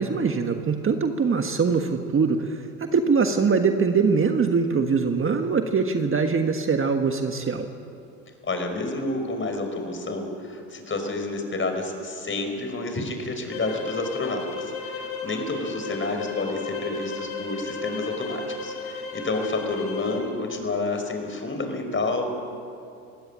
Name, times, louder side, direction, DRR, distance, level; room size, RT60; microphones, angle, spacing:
voice 1, 0.0-7.7, right 5 dB, 30° right, 6 dB, 1.6 m, -23 dB
voice 2, 8.4-22.2, left 2 dB, 30° left, 5 dB, 5.1 m, -29 dB
sound 1, 13.5-20.3, left 4 dB, 85° left, 5.1 m, -34 dB
22.0 x 17.0 x 8.9 m, 2.6 s
hypercardioid pair, 80°, 42 cm